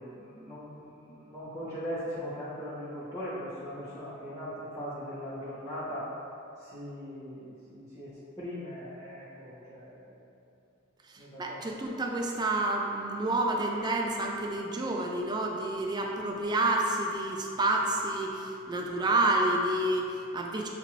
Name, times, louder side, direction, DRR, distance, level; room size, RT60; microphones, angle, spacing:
voice 1, 0.0-6.1 6.6-10.2 11.2-12.0, equal, 20° left, -12 dB, 0.9 m, -40 dB
voice 2, 11.4-20.7, right 2 dB, 20° right, 0 dB, 0.4 m, -29 dB
6.4 x 2.5 x 3.1 m, 2.6 s
head